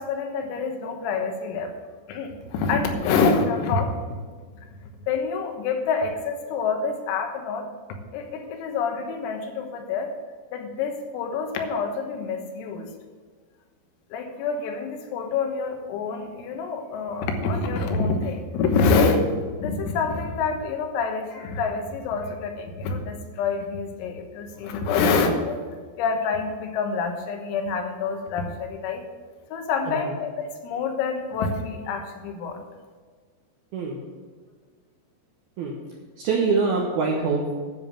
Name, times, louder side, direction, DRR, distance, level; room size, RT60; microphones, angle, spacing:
voice 1, 0.0-1.7 2.1-4.0 5.1-7.7 8.1-10.1 10.5-12.9 14.1-25.6 26.0-29.0 29.5-32.6, left 4 dB, 85° left, 4 dB, 3.9 m, -26 dB
voice 2, 29.9-30.2 33.7-34.0 35.6-35.7 36.2-37.5, right 4 dB, 80° right, -1 dB, 2.2 m, -24 dB
10.5 x 7.2 x 7.5 m, 1.5 s
omnidirectional pair, 6.0 m